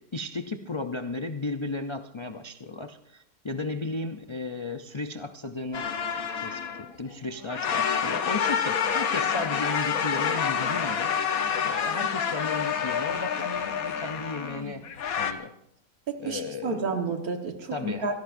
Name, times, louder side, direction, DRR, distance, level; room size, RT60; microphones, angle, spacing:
voice 1, 0.0-5.9 6.4-11.1 11.6-14.9 15.2-15.6 16.2-16.9 17.7-18.1, left 3 dB, 40° left, 7 dB, 0.4 m, -35 dB
sound 1, 5.7-7.1 7.4-15.3, left 7 dB, 75° left, 1.5 m, -28 dB
voice 2, 16.1-18.2, right 3 dB, 90° right, 5 dB, 2.0 m, -30 dB
25.5 x 17.0 x 2.6 m, 0.78 s
omnidirectional pair, 1.5 m